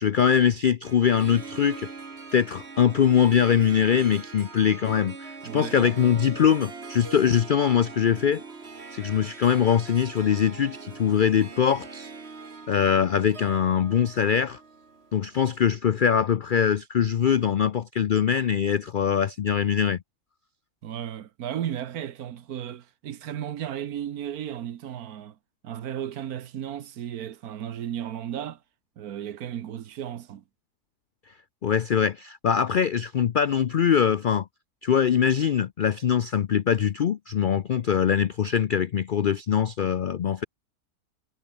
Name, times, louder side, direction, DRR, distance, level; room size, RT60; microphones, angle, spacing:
voice 1, 0.0-1.9 2.3-8.4 8.9-12.1 12.7-14.6 15.1-20.0 31.6-34.5 34.8-40.4, left 8 dB, 80° left, 0.4 m, -22 dB
Harp, 0.8-15.3, right 4 dB, 45° right, 2.3 m, -42 dB
voice 2, 5.4-5.9 20.8-25.4 25.6-28.6 29.0-30.4, right 10 dB, 75° right, 1.4 m, -34 dB
omnidirectional pair, 1.6 m